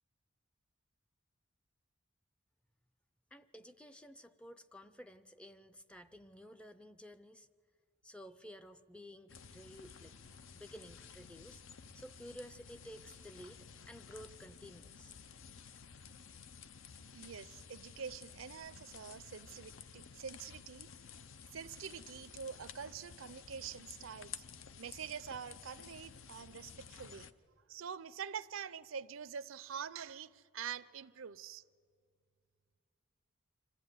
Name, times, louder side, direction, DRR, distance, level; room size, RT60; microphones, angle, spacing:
voice 1, 3.3-7.5 8.0-10.1 10.5-11.6 11.9-15.1, equal, 5° left, 0.4 m, -53 dB
sound 1, 9.3-27.3, left 6 dB, 70° left, 0.6 m, -53 dB
voice 2, 17.1-20.9 21.5-24.4 24.8-27.3 27.7-31.6, right 7 dB, 75° right, 0.5 m, -46 dB
25.5 x 13.5 x 9.6 m
head